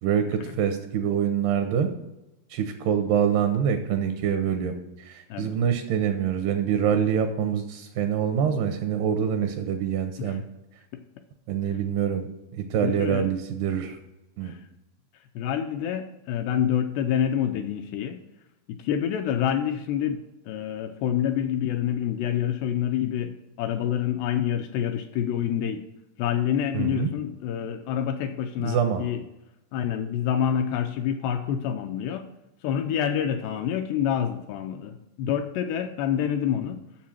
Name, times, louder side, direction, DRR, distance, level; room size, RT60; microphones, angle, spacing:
voice 1, 0.0-1.9 2.5-10.4 11.5-12.3 12.5-14.0 14.4-14.5 26.7-27.1 28.6-29.0, right 8 dB, 80° right, 7 dB, 2.5 m, -25 dB
voice 2, 12.8-13.3 14.4-14.7 15.1-18.2 18.7-25.9 26.2-29.2 29.7-32.3 32.6-36.8, left 9 dB, 85° left, 6 dB, 2.5 m, -27 dB
7.5 x 6.7 x 7.1 m, 0.93 s
omnidirectional pair, 5.2 m